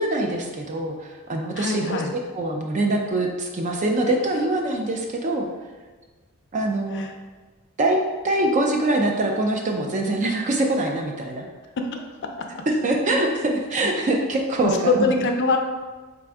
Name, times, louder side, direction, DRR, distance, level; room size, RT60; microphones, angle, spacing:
voice 1, 0.0-5.5 6.5-7.0 7.8-11.5 12.7-15.2, right 1 dB, 35° right, 2 dB, 0.4 m, -24 dB
voice 2, 1.6-2.1 6.9-7.1 11.8-12.5 14.8-15.6, left 3 dB, 55° left, 3 dB, 0.4 m, -24 dB
4.5 x 2.5 x 3.4 m, 1.3 s
head